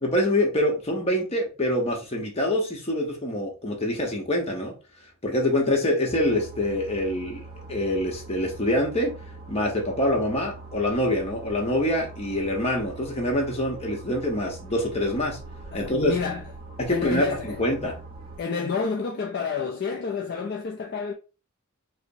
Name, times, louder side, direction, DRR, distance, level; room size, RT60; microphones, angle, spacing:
voice 1, 0.0-4.7 5.2-7.4 7.7-9.1 9.5-15.4 15.7-16.1 16.8-18.0, left 1 dB, 30° left, 0.9 m, -25 dB
sound 1, 6.1-18.4, right 2 dB, 25° right, 1.0 m, -42 dB
voice 2, 15.7-16.5 16.9-17.6 18.4-21.1, left 5 dB, 50° left, 0.4 m, -29 dB
5.0 x 2.1 x 2.6 m
head